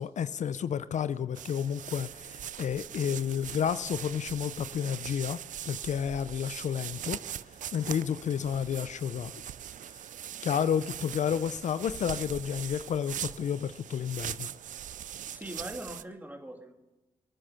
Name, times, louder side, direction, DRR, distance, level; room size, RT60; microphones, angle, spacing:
voice 1, 0.0-5.4 5.7-7.2 7.7-9.4 10.4-14.5, left 8 dB, 65° left, 15 dB, 0.5 m, -31 dB
sound 1, 1.3-16.0, right 10 dB, 70° right, 0.5 m, -41 dB
voice 2, 15.3-16.7, right 1 dB, 15° right, 3 dB, 2.6 m, -41 dB
22.5 x 9.0 x 5.6 m, 1.1 s
supercardioid pair, 45°, 13 cm